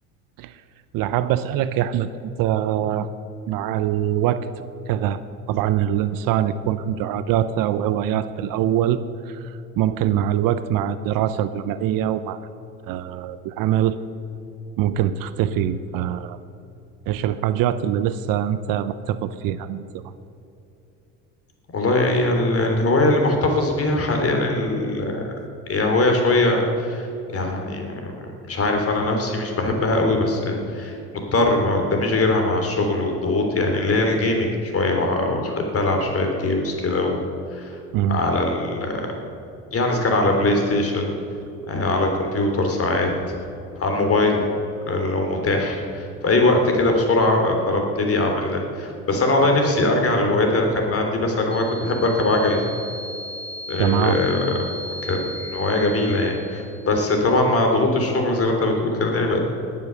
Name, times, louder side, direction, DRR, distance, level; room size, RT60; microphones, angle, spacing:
voice 1, 0.9-2.1 2.4-3.1 3.5-5.2 5.5-9.4 9.8-12.4 12.9-14.0 14.8-16.4 17.1-20.0 37.9-38.2 53.8-54.2, right 11 dB, 55° right, 13 dB, 0.7 m, -23 dB
voice 2, 21.7-25.3 25.7-27.1 27.3-31.0 31.3-37.2 37.5-37.8 38.1-39.1 39.7-41.1 41.7-43.3 43.8-44.4 44.9-52.6 53.7-54.5 55.0-59.4, left 2 dB, 35° left, 3 dB, 3.4 m, -21 dB
sound 1, 51.5-57.2, left 1 dB, 10° right, 3.1 m, -37 dB
19.5 x 7.4 x 6.8 m, 2.8 s
hypercardioid pair, 75°, 40 cm